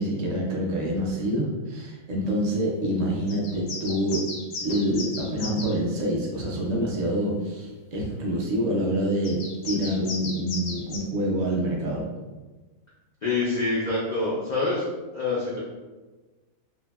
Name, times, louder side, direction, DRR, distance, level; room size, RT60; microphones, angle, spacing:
voice 1, 0.0-4.3 4.6-12.1, equal, 85° right, -3 dB, 0.3 m, -26 dB
sound 1, 3.3-5.7 9.2-11.0, left 3 dB, 60° left, 0.7 m, -35 dB
voice 2, 13.2-14.9 15.1-15.6, left 3 dB, 90° left, -6 dB, 0.3 m, -26 dB
2.7 x 2.6 x 2.3 m, 1.2 s
omnidirectional pair, 1.4 m